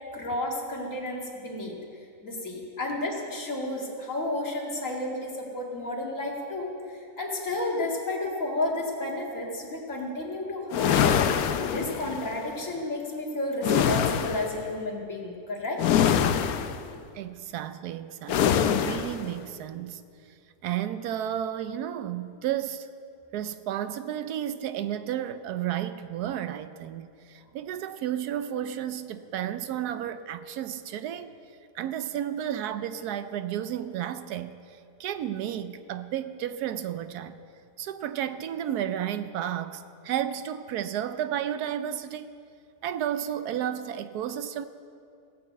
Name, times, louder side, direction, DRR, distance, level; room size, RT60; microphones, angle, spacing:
voice 1, 0.1-1.8 2.2-15.8, left 2 dB, 55° left, -2 dB, 2.4 m, -32 dB
sound 1, 10.7-12.3 13.6-14.6 15.8-16.9 18.3-19.2, left 8 dB, 70° left, 1.1 m, -24 dB
voice 2, 17.1-20.0 20.6-22.9 23.3-31.3 31.7-37.4 37.8-42.3 42.8-44.7, right 10 dB, 75° right, 11 dB, 1.1 m, -32 dB
17.0 x 7.0 x 8.1 m, 2.4 s
omnidirectional pair, 1.7 m